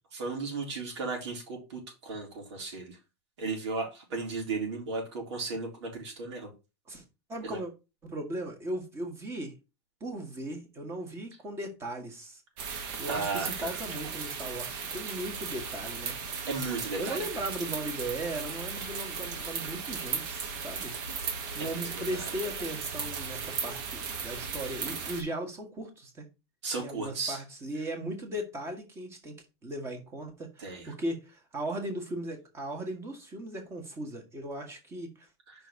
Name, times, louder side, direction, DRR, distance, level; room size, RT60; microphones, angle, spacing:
voice 1, 0.1-3.0 3.4-6.5 7.4-7.6 13.1-13.8 16.5-17.2 20.5-20.6 21.3-21.4 21.6-22.2 26.6-27.4 30.6-30.9, right 4 dB, 85° right, 3.9 m, -35 dB
voice 2, 7.3-7.7 8.0-9.5 10.0-12.4 12.7-16.5 17.0-20.9 21.5-26.2 26.8-35.3, right 1 dB, 20° right, 1.6 m, -37 dB
sound 1, 12.6-25.2, right 5 dB, 50° right, 1.6 m, -36 dB
5.4 x 4.4 x 5.7 m
supercardioid pair, 155°, 14 cm